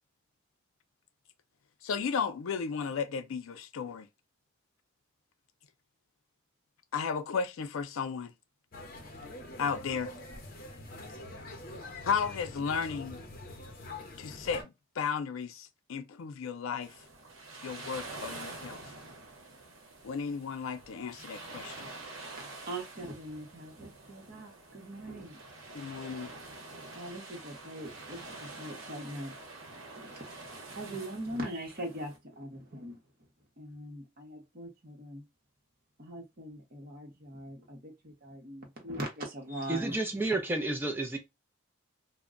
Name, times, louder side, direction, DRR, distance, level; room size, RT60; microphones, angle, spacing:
voice 1, 1.8-4.1 6.9-8.3 9.6-10.1 12.0-13.2 14.2-16.9 17.6-18.8 20.0-21.9 25.7-26.3, left 6 dB, 85° left, 0.4 m, -34 dB
sound 1, 8.7-14.6, left 2 dB, 45° left, 0.6 m, -45 dB
sound 2, 16.8-32.2, right 2 dB, 80° right, 0.8 m, -47 dB
voice 2, 22.4-25.4 26.1-26.4 26.9-29.3 29.9-33.0 33.6-35.2 36.0-40.0, right 1 dB, 45° right, 0.9 m, -41 dB
voice 3, 39.7-41.2, right 2 dB, 10° right, 0.4 m, -31 dB
2.2 x 2.1 x 3.6 m
head